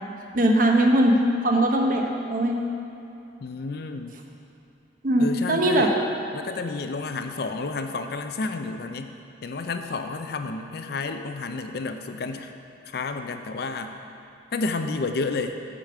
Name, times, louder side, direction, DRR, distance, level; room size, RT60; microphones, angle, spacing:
voice 1, 0.3-1.2 1.4-2.6 5.0-5.9, right 1 dB, 50° right, 1 dB, 0.9 m, -20 dB
voice 2, 3.4-4.2 5.2-6.0 6.3-9.1 9.4-12.5 12.9-14.0 14.5-15.6, left 3 dB, 60° left, 7 dB, 0.5 m, -31 dB
8.1 x 5.1 x 6.6 m, 2.8 s
head